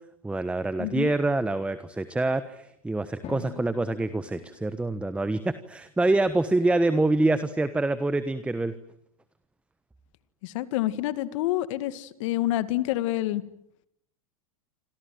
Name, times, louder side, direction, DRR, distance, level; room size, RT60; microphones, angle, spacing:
voice 1, 0.2-8.7, right 2 dB, 5° right, 13 dB, 1.2 m, -26 dB
voice 2, 0.8-1.1 10.4-13.4, left 14 dB, 60° left, 13 dB, 2.1 m, -28 dB
Drum, 3.2-5.7, left 6 dB, 35° left, 5.1 m, -45 dB
28.0 x 27.0 x 7.8 m, 0.74 s
hypercardioid pair, 105°, 18 cm